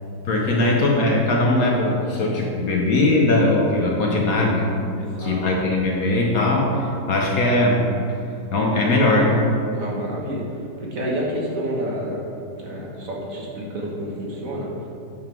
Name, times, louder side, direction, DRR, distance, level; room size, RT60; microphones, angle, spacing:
voice 1, 0.3-4.7 5.2-7.9 8.5-9.5, left 2 dB, 55° left, -2 dB, 1.3 m, -20 dB
voice 2, 5.0-5.4 9.7-10.4 10.8-12.3 12.5-14.7, right 1 dB, 50° right, -4 dB, 1.5 m, -29 dB
7.9 x 5.6 x 4.5 m, 2.6 s
omnidirectional pair, 1.9 m